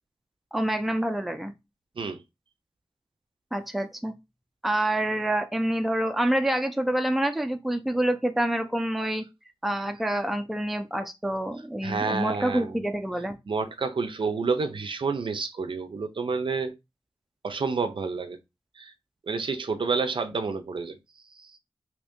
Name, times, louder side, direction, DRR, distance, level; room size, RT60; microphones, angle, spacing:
voice 1, 0.5-1.5 3.5-4.1 4.6-9.2 9.6-13.4, right 1 dB, ahead, 0.4 m, -27 dB
voice 2, 11.8-12.8 13.5-16.7 17.4-18.4 18.8-18.9 19.3-21.0 21.4-21.6, right 4 dB, 60° right, 0.5 m, -29 dB
2.8 x 2.6 x 3.5 m
wide cardioid pair, 85°, 10 cm